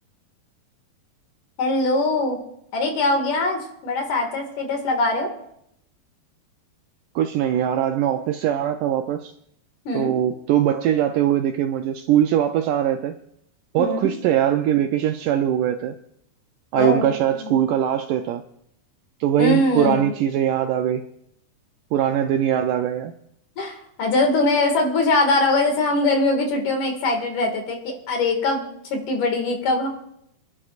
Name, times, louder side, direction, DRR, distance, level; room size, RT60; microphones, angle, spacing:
voice 1, 1.6-2.4 2.7-5.3 9.8-10.2 13.7-14.1 16.7-17.5 19.4-20.1 23.6-29.9, left 2 dB, 60° left, 3.4 m, -22 dB
voice 2, 7.2-9.3 9.9-13.1 13.7-16.0 16.7-18.4 19.2-21.0 21.9-23.1, right 10 dB, 80° right, 1.9 m, -21 dB
27.5 x 11.5 x 2.5 m
omnidirectional pair, 4.2 m